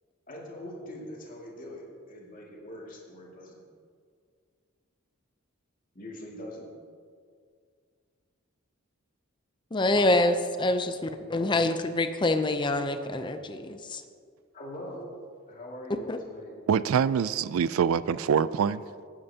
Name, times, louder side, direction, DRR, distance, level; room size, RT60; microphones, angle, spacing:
voice 1, 0.3-3.6 5.9-6.7 11.2-11.5 14.5-15.1 15.5-16.5, left 1 dB, 40° left, 2.2 m, -42 dB
voice 2, 9.7-10.9 11.3-14.0 16.1-16.2, left 2 dB, 20° left, 0.5 m, -26 dB
voice 3, 16.7-18.8, right 7 dB, 80° right, 0.3 m, -25 dB
18.5 x 8.7 x 2.8 m
head